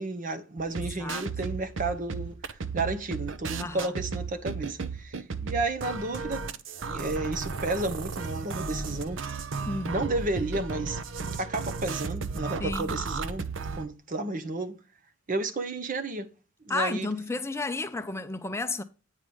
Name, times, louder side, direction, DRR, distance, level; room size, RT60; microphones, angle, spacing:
voice 1, 0.0-6.5 6.8-9.2 9.9-11.0 11.3-13.5 13.8-14.8 15.3-16.3 16.6-17.1, right 2 dB, 40° right, 0.9 m, -32 dB
sound 1, 0.6-13.8, right 4 dB, 70° right, 0.7 m, -34 dB
voice 2, 3.6-3.9 9.7-10.1 12.6-12.9 16.7-18.8, left 3 dB, 15° left, 0.4 m, -32 dB
9.1 x 4.7 x 5.4 m
head